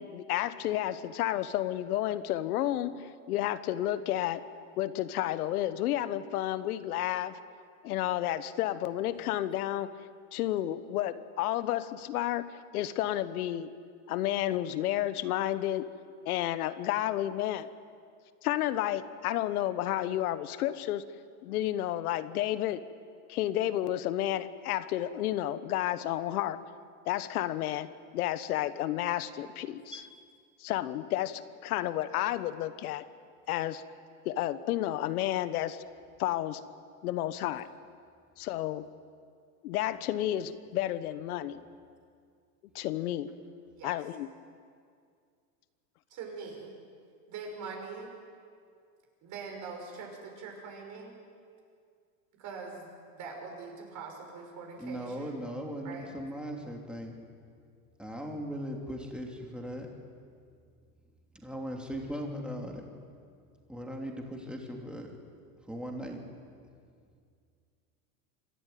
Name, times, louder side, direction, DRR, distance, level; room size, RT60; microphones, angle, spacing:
voice 1, 0.0-4.4 4.8-7.4 7.8-9.9 10.3-13.7 14.1-15.9 16.2-17.7 18.4-21.0 21.4-22.8 23.3-26.6 27.1-27.9 28.1-30.0 30.6-33.0 33.5-33.8 34.2-35.8 36.2-36.6 37.0-37.7 38.4-38.8 39.6-41.6 42.7-43.3 43.8-44.3, left 13 dB, 75° left, 13 dB, 1.3 m, -31 dB
voice 2, 46.1-46.7 47.3-48.1 49.2-51.2 52.4-52.9 53.2-55.4 55.8-56.1, right 4 dB, 40° right, 1 dB, 6.0 m, -43 dB
voice 3, 54.8-57.3 58.0-59.9 61.4-62.9 63.7-65.1 65.7-66.2, equal, ahead, 0 dB, 3.0 m, -38 dB
26.5 x 13.5 x 9.4 m, 2.2 s
supercardioid pair, 135°, 45 cm